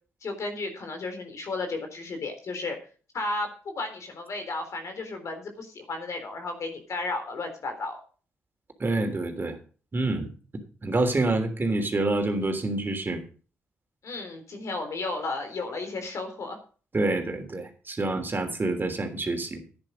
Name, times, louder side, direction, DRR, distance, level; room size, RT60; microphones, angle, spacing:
voice 1, 0.2-2.8 3.1-3.5 3.8-8.0 14.0-16.6, left 2 dB, 60° left, 6 dB, 3.7 m, -33 dB
voice 2, 8.8-9.6 9.9-10.3 10.8-13.2 16.9-19.8, right 2 dB, 35° right, 5 dB, 3.2 m, -27 dB
11.0 x 9.9 x 5.1 m, 0.40 s
hypercardioid pair, 45°, 6 cm